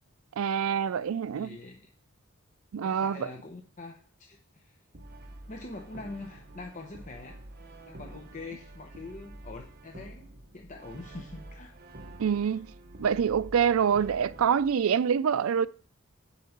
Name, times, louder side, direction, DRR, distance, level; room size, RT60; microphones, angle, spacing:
voice 1, 0.4-1.6 2.7-3.3 12.2-12.7 13.0-15.7, right 7 dB, 80° right, 0.4 m, -26 dB
voice 2, 1.3-1.8 2.8-4.8 5.5-7.4 7.9-11.7 12.5-12.6, left 3 dB, 35° left, 0.9 m, -44 dB
Brass instrument, 4.9-14.7, right 1 dB, 45° right, 1.2 m, -48 dB
7.9 x 4.6 x 7.2 m
head